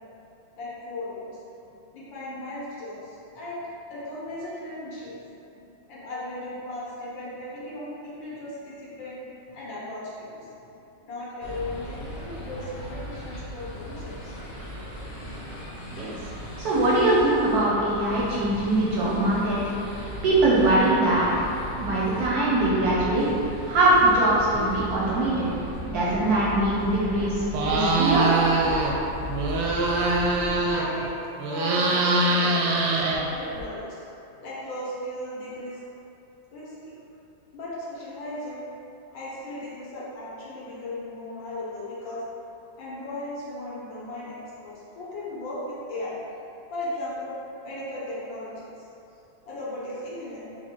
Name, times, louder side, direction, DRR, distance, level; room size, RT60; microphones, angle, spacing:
voice 1, 0.5-1.4 1.9-3.6 3.9-5.2 5.6-10.5 11.0-14.3 30.2-32.7 33.3-34.0 34.4-35.8 36.5-37.0 37.5-38.7 39.1-42.2 42.8-44.4 44.6-46.2 46.7-47.3 47.6-48.6 49.4-50.4, left 1 dB, 80° left, -7 dB, 1.7 m, -36 dB
sound 1, 11.4-30.7, equal, 55° left, 0.5 m, -37 dB
voice 2, 16.6-19.6 20.2-21.5 21.8-23.3 23.7-25.5 25.9-28.3, right 2 dB, 70° right, -6 dB, 0.9 m, -22 dB
sound 2, 27.5-28.9 29.2-31.1 31.4-33.6, right 2 dB, 90° right, 1.3 m, -23 dB
4.3 x 2.2 x 4.4 m, 2.8 s
omnidirectional pair, 2.0 m